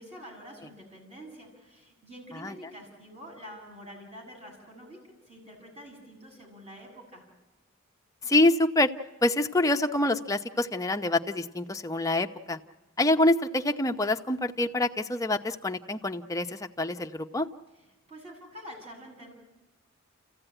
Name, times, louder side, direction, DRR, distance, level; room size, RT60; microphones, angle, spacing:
voice 1, 0.0-7.2 17.8-19.3, equal, 30° right, -1 dB, 7.1 m, -47 dB
voice 2, 8.2-8.9 9.2-12.6 13.0-17.5, left 2 dB, 15° left, 5 dB, 0.7 m, -26 dB
30.0 x 15.0 x 9.0 m, 1.1 s
head